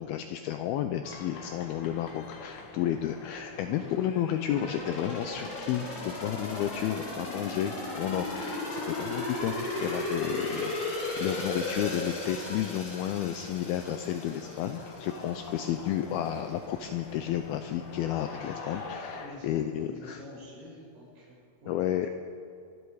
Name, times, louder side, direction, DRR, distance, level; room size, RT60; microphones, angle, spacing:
voice 1, 0.0-20.2 21.7-22.1, left 11 dB, 85° left, 8 dB, 2.2 m, -32 dB
sound 1, 1.0-19.3, left 3 dB, 55° left, 1.5 m, -46 dB
voice 2, 3.6-4.2 19.2-21.8, left 1 dB, 85° right, -5 dB, 7.7 m, -47 dB
sound 2, 4.5-15.2 15.6-15.7, left 2 dB, 40° left, 5.0 m, -35 dB
26.0 x 11.0 x 4.8 m, 2.6 s
omnidirectional pair, 5.0 m